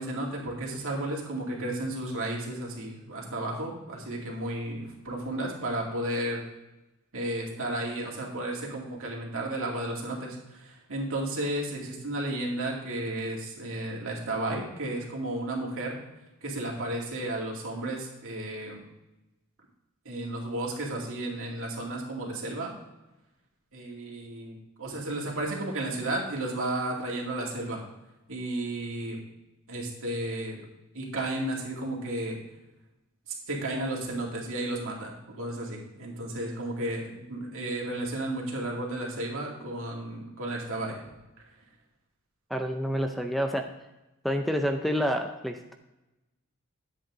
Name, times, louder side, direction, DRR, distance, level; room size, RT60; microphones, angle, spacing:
voice 1, 0.0-6.4 7.1-16.0 16.4-18.8 20.0-22.7 23.7-27.8 28.3-29.2 29.7-30.6 30.9-32.4 33.5-41.0, right 1 dB, 65° right, -2 dB, 2.4 m, -33 dB
voice 2, 42.5-43.7 44.2-45.7, equal, ahead, 5 dB, 0.5 m, -28 dB
10.5 x 8.1 x 3.7 m, 0.98 s
head